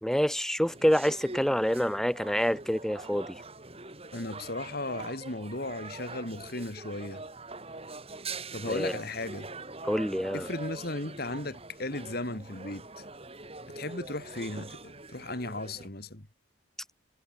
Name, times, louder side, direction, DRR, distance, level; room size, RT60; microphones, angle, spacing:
voice 1, 0.0-3.4 8.7-8.9 9.8-10.5, equal, ahead, 0.6 m, -27 dB
sound 1, 0.7-15.9, right 3 dB, 30° right, 4.0 m, -44 dB
voice 2, 4.1-7.2 8.5-9.5 10.3-13.0 13.7-16.3, left 2 dB, 50° left, 3.1 m, -36 dB
head